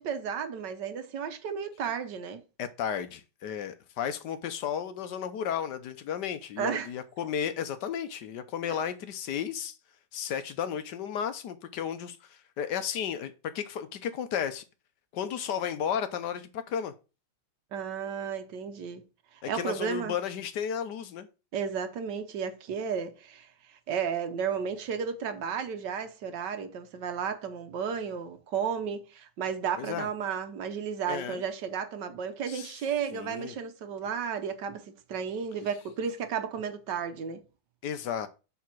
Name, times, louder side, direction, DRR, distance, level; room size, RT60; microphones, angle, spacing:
voice 1, 0.0-2.4 6.6-6.9 8.7-8.8 17.7-19.0 19.5-20.1 21.5-37.4, right 7 dB, 70° right, 1.5 m, -33 dB
voice 2, 2.6-9.7 10.1-14.6 15.1-16.9 19.4-21.3 29.8-30.1 31.1-31.4 32.5-32.7 33.1-33.6 37.8-38.3, left 8 dB, 70° left, 1.4 m, -33 dB
7.0 x 4.1 x 6.0 m
omnidirectional pair, 2.0 m